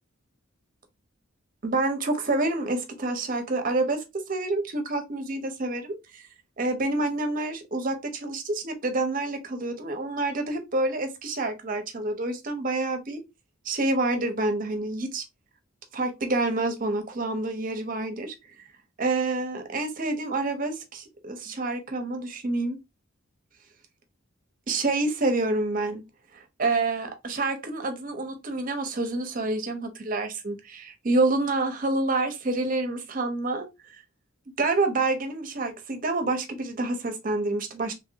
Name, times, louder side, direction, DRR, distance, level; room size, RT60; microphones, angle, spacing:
voice 1, 1.6-6.2 6.6-13.2 13.7-15.2 15.9-18.3 19.0-22.8 24.7-26.0 26.3-33.7 34.6-37.9, right 2 dB, 40° right, 0.6 m, -28 dB
3.0 x 2.5 x 2.7 m
head